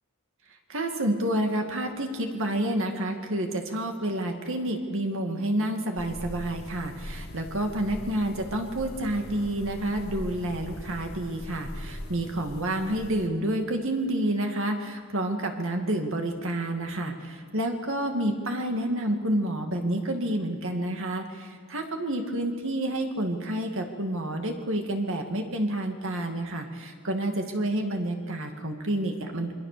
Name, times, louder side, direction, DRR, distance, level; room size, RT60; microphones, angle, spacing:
voice 1, 0.7-29.5, right 1 dB, 60° right, 4 dB, 2.4 m, -29 dB
sound 1, 6.0-13.3, left 1 dB, 70° left, 2.0 m, -41 dB
27.0 x 23.0 x 6.9 m, 2.1 s
head